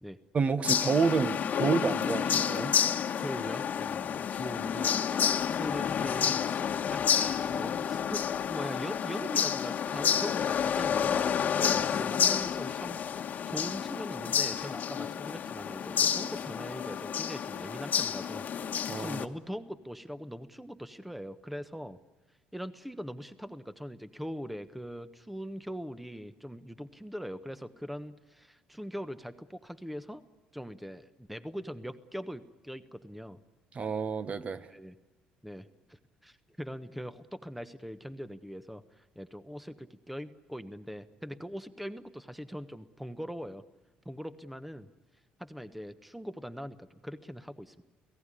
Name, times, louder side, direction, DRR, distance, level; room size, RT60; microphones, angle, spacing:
voice 1, 0.3-2.7 18.9-19.2 33.7-34.7, right 5 dB, 40° right, 1.4 m, -29 dB
sound 1, 0.6-19.3, left 8 dB, 50° left, 1.4 m, -30 dB
voice 2, 3.2-5.0 5.3-6.5 6.9-22.0 22.5-30.2 30.5-33.4 34.7-34.9 35.4-43.6 44.0-44.9 45.4-47.8, equal, 5° right, 1.2 m, -41 dB
29.0 x 17.5 x 10.0 m
hypercardioid pair, 65°, 4 cm